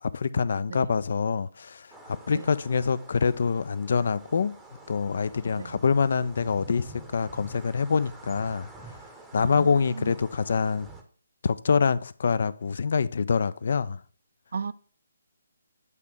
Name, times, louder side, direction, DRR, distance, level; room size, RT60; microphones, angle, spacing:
voice 1, 0.0-4.5 4.9-8.7 9.3-10.9 11.4-14.0, left 5 dB, 55° left, 0.3 m, -25 dB
sound 1, 1.9-11.0, right 2 dB, 5° right, 0.7 m, -48 dB
voice 2, 9.4-10.1 14.5-14.7, right 5 dB, 55° right, 0.3 m, -35 dB
8.2 x 2.8 x 4.7 m
figure-of-eight pair, 140°, 0 cm